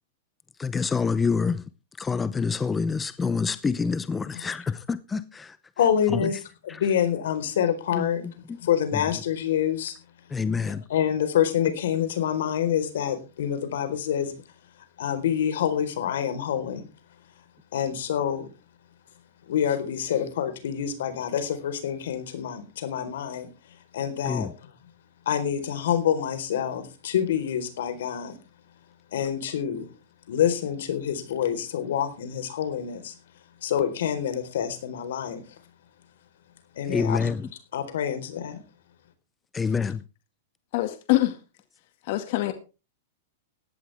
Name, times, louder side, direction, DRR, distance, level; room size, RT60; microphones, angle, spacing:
voice 1, 0.6-1.6 2.0-5.6 8.0-8.1 10.3-10.8 24.2-24.5 36.9-37.4 39.5-40.0, left 5 dB, 10° left, 0.7 m, -26 dB
voice 2, 5.8-6.4 6.6-9.9 10.6-14.4 15.0-16.8 17.7-18.5 19.5-23.5 23.9-24.7 25.3-28.4 29.1-29.9 30.3-33.1 33.6-35.4 36.8-37.4 37.7-38.6, left 9 dB, 75° left, 4.2 m, -27 dB
voice 3, 40.7-41.4 42.0-42.5, left 17 dB, 55° left, 2.0 m, -24 dB
16.5 x 12.0 x 3.5 m
hypercardioid pair, 145°, 0 cm